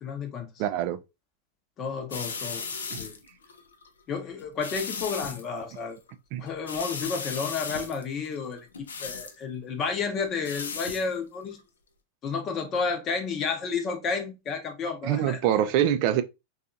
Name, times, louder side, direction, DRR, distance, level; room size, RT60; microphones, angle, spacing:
voice 1, 0.0-0.5 1.8-2.6 3.0-3.2 4.1-6.0 6.4-11.6 12.2-15.4, left 5 dB, 35° left, 0.7 m, -31 dB
voice 2, 0.6-1.0 2.9-3.0 6.3-6.4 15.0-16.2, right 11 dB, 55° right, 0.3 m, -24 dB
sound 1, 2.1-3.9 4.4-5.4 5.7-6.1 6.5-9.4 10.2-11.1 11.4-11.6, left 5 dB, 85° left, 0.4 m, -36 dB
2.7 x 2.3 x 2.5 m
hypercardioid pair, 100°, 0 cm